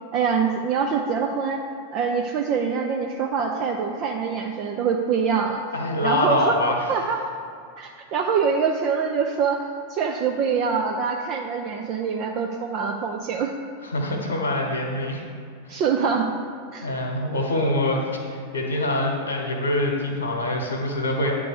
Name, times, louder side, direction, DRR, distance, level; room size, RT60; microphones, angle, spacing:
voice 1, 0.1-1.6 1.9-5.6 6.0-6.6 6.9-7.2 7.8-13.5 15.7-16.3 16.7-16.9, right 6 dB, 40° right, 2 dB, 0.6 m, -24 dB
voice 2, 5.7-6.7 13.8-15.2 15.7-15.8 16.8-21.4, left 1 dB, 75° left, 0 dB, 1.1 m, -25 dB
9.6 x 3.7 x 6.8 m, 2.3 s
figure-of-eight pair, 90°, 0 cm